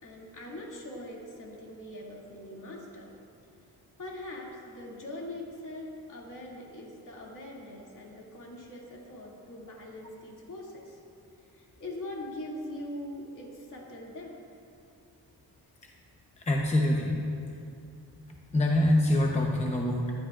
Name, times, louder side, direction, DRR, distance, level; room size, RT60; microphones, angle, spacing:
voice 1, 0.0-3.1 4.0-11.0 11.5-14.6, left 1 dB, 55° left, -3 dB, 2.4 m, -42 dB
voice 2, 16.4-17.3 18.5-20.1, left 1 dB, 20° left, -1 dB, 0.8 m, -25 dB
19.5 x 12.5 x 2.4 m, 2.4 s
wide cardioid pair, 160°, 38 cm